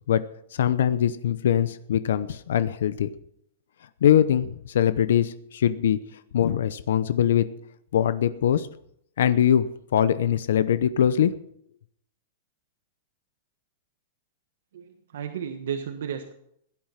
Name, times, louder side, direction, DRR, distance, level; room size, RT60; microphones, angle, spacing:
voice 1, 0.5-3.1 4.0-6.0 6.3-7.5 7.9-8.7 9.2-9.7 9.9-11.3, left 9 dB, 75° left, 13 dB, 0.8 m, -22 dB
voice 2, 14.7-16.3, right 8 dB, 70° right, 5 dB, 1.4 m, -33 dB
16.5 x 11.0 x 5.8 m, 0.71 s
supercardioid pair, 180°, 0 cm